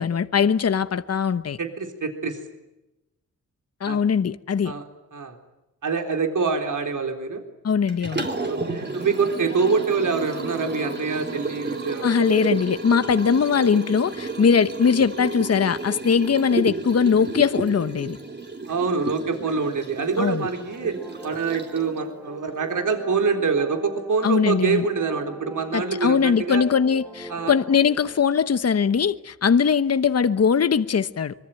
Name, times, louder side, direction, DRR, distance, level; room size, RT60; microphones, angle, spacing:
voice 1, 0.0-1.6 3.8-4.7 7.6-8.3 12.0-18.2 20.2-20.5 24.2-24.8 25.7-31.3, left 6 dB, 50° left, 1.0 m, -21 dB
voice 2, 1.6-2.4 3.9-4.0 4.6-4.8 5.1-5.3 5.8-7.4 8.5-12.3 18.7-21.0 21.2-26.6 27.3-27.5, right 5 dB, 70° right, 3.8 m, -25 dB
Liquid, 7.9-22.0, right 3 dB, 35° right, 3.9 m, -32 dB
sound 1, 20.3-28.2, right 2 dB, 5° right, 3.3 m, -41 dB
25.5 x 23.0 x 9.1 m
wide cardioid pair, 95°, 32 cm